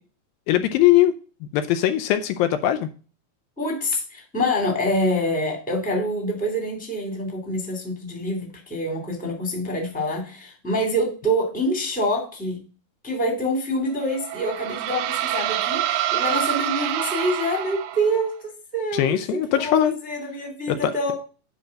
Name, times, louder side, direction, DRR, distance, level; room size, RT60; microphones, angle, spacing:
voice 1, 0.5-1.1 1.5-2.9 18.9-19.9 20.7-21.1, left 12 dB, 80° left, 9 dB, 2.4 m, -20 dB
voice 2, 3.6-12.6 13.0-19.2 19.6-21.1, equal, 5° left, 1 dB, 1.8 m, -26 dB
sound 1, 14.0-18.3, right 13 dB, 80° right, 1.8 m, -26 dB
9.7 x 3.4 x 6.4 m, 0.36 s
omnidirectional pair, 4.2 m